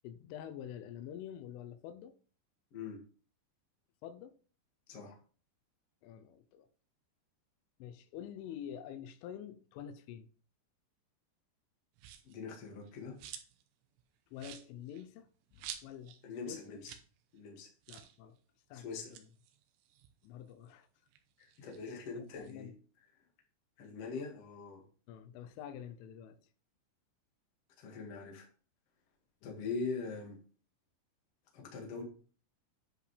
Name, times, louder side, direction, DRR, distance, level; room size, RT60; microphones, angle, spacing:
voice 1, 0.0-2.2 4.0-4.4 6.0-6.7 7.8-10.3 14.3-16.2 16.5-16.8 17.9-18.4 18.7-19.2 20.2-20.9 22.1-22.7 25.1-26.4 29.4-29.7, left 9 dB, 85° left, 3.2 m, -47 dB
voice 2, 2.7-3.0 4.9-5.2 12.2-13.2 16.2-16.9 17.3-17.7 18.7-19.1 21.4-22.7 23.8-24.8 27.8-28.4 29.4-30.4 31.5-32.0, left 4 dB, 45° left, 2.1 m, -42 dB
sound 1, 12.0-12.4 12.8-13.7 14.0-14.1 14.4-16.2 16.5-16.6 16.8-17.1 17.4-17.5 17.8-18.2 18.9-20.7 21.1-22.5, right 10 dB, 80° right, 2.9 m, -50 dB
10.5 x 5.1 x 3.3 m
omnidirectional pair, 5.5 m